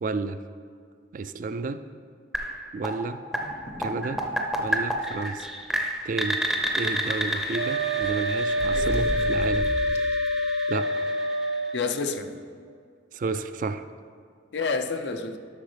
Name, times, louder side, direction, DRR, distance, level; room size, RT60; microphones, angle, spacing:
voice 1, 0.0-0.4 1.1-1.8 2.7-3.2 3.8-4.2 4.6-5.5 6.0-6.4 6.7-9.7 10.7-11.1 13.1-13.8, right 4 dB, 45° right, 11 dB, 0.3 m, -31 dB
sound 1, 2.3-12.1, equal, ahead, 0.6 m, -31 dB
sound 2, 3.3-4.3 4.7-4.8 5.0-5.3 6.4-7.5 8.0-10.3, equal, 40° left, 0.7 m, -36 dB
Wind instrument woodwind instrument, 7.5-11.8, equal, 85° right, 0.7 m, -26 dB
voice 2, 8.7-9.2 11.7-12.4 14.5-15.4, left 4 dB, 75° left, 7 dB, 0.6 m, -29 dB
11.5 x 6.2 x 3.3 m, 2.2 s
head